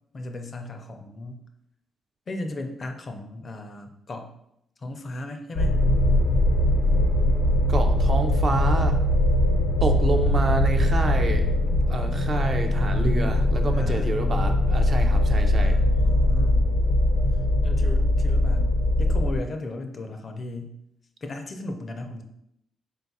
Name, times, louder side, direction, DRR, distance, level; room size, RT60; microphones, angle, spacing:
voice 1, 0.1-1.4 2.3-4.3 4.8-5.8 13.7-14.1 15.5-16.9 17.6-20.7 21.2-22.2, left 2 dB, 35° left, 6 dB, 0.4 m, -36 dB
sound 1, 5.6-19.4, left 1 dB, 85° left, 0.6 m, -21 dB
voice 2, 7.7-9.0 9.8-11.5 11.9-15.8, right 3 dB, 40° right, 5 dB, 0.4 m, -28 dB
3.8 x 2.3 x 4.0 m, 0.78 s
cardioid pair, 125°, 0 cm